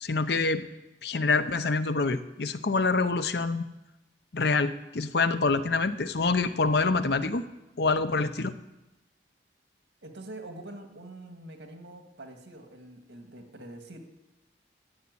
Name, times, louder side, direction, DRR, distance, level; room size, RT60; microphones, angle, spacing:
voice 1, 0.0-0.7 1.0-3.7 4.3-7.5 7.8-8.5, left 3 dB, 65° left, 11 dB, 0.7 m, -26 dB
voice 2, 10.0-14.0, right 1 dB, 85° right, 4 dB, 2.0 m, -45 dB
13.5 x 7.3 x 9.6 m, 1.0 s
head